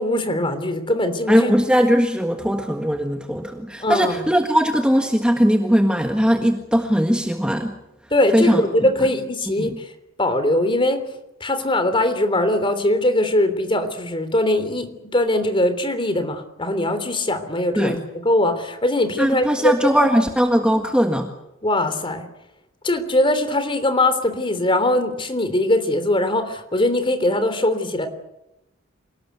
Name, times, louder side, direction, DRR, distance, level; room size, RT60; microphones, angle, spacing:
voice 1, 0.0-1.5 3.8-4.2 8.1-9.9 10.2-11.0 11.4-18.0 18.2-20.1 21.6-22.3 22.8-28.1, left 1 dB, 25° left, 9 dB, 3.3 m, -21 dB
voice 2, 1.3-7.7 8.3-8.6 9.6-9.8 17.7-18.0 19.2-21.3, equal, 5° right, 4 dB, 1.6 m, -19 dB
28.0 x 19.0 x 8.2 m, 0.88 s
head